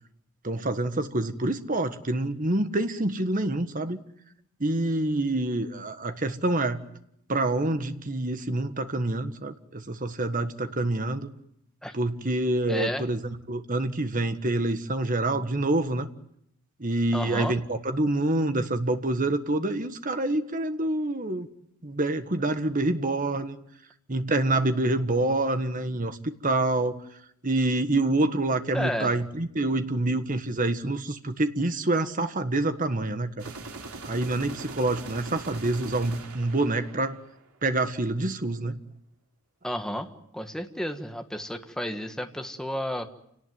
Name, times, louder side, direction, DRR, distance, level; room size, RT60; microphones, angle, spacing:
voice 1, 0.4-4.0 4.6-6.8 7.3-11.3 11.9-13.2 13.5-16.1 16.8-21.5 21.8-23.6 24.1-26.2 26.4-26.9 27.4-33.4 34.0-37.2 37.6-38.8, right 2 dB, 40° right, 9 dB, 1.6 m, -27 dB
voice 2, 12.7-13.1 17.1-17.5 28.7-29.2 39.6-40.1 40.3-43.1, equal, 5° left, 5 dB, 1.6 m, -32 dB
sound 1, 33.4-37.5, right 3 dB, 85° right, 3.3 m, -41 dB
28.5 x 18.5 x 9.5 m, 0.74 s
head